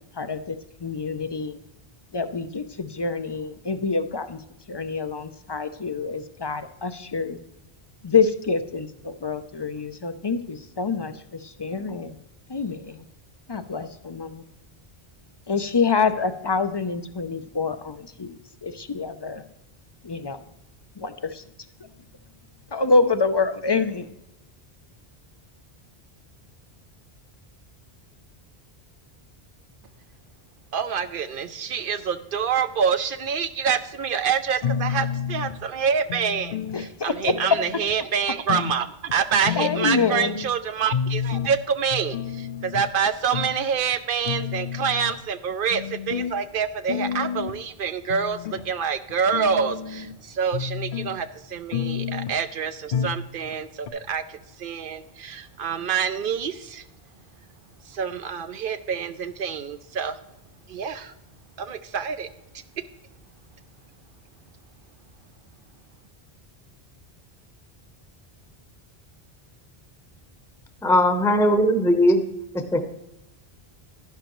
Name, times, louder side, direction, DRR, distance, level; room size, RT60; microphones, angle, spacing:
voice 1, 0.2-0.6 0.8-1.6 2.1-4.4 4.7-7.4 8.0-12.1 12.5-13.0 13.5-14.4 15.5-18.4 18.6-19.4 20.0-20.4 21.0-21.4 22.7-24.1 36.7-37.3 39.6-40.4, left 4 dB, 35° left, 10 dB, 0.4 m, -26 dB
voice 2, 30.7-56.8 57.9-60.2 60.7-61.1 61.6-62.3, right 7 dB, 65° right, 10 dB, 0.7 m, -27 dB
sound 1, 34.6-35.6 36.1-36.9 37.3-37.9 38.5-38.8 39.1-39.2 39.5-40.4 40.9-41.5 41.9-42.9 43.3-43.5 43.9-44.0 44.3-45.2 45.7-46.3 46.9-47.6 48.1-48.6 49.1-50.1 50.5-51.1 51.7-52.4 52.9-53.2 53.5-53.6 53.9-54.0, left 7 dB, 60° left, 0.7 m, -30 dB
voice 3, 70.8-72.2 72.5-72.9, equal, 5° left, 6 dB, 0.8 m, -19 dB
11.5 x 11.5 x 3.0 m, 0.88 s
omnidirectional pair, 1.1 m